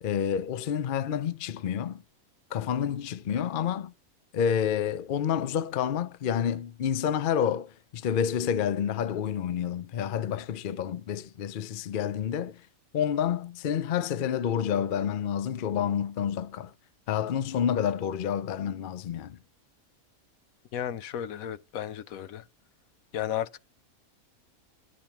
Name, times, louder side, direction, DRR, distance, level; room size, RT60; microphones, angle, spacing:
voice 1, 0.0-2.0 2.5-3.9 4.3-12.6 12.9-16.7 17.1-19.4, left 8 dB, 55° left, 0.6 m, -29 dB
voice 2, 20.7-22.4 23.1-23.6, left 10 dB, 75° left, 1.1 m, -33 dB
11.0 x 4.1 x 5.8 m
omnidirectional pair, 1.5 m